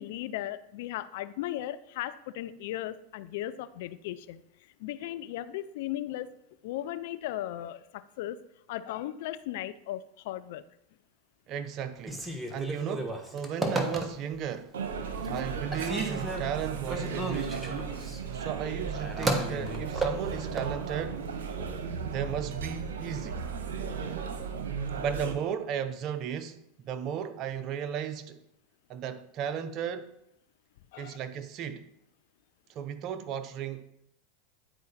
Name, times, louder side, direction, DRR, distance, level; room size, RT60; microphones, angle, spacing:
voice 1, 0.0-4.4 4.8-6.3 6.6-8.4 8.7-10.6 30.9-31.2, left 13 dB, 65° left, 0.5 m, -36 dB
voice 2, 11.5-14.7 15.3-17.8 18.3-21.2 22.0-23.4 24.9-26.6 26.8-28.4 28.9-30.1 31.0-31.9 32.7-33.8, right 8 dB, 45° right, 0.7 m, -35 dB
Telephone, 12.0-14.5 14.9-15.4 15.7-20.7, right 2 dB, 10° right, 1.2 m, -33 dB
sound 1, 14.7-25.3, right 6 dB, 80° right, 1.0 m, -35 dB
10.0 x 4.8 x 4.2 m
hypercardioid pair, 105°, 0 cm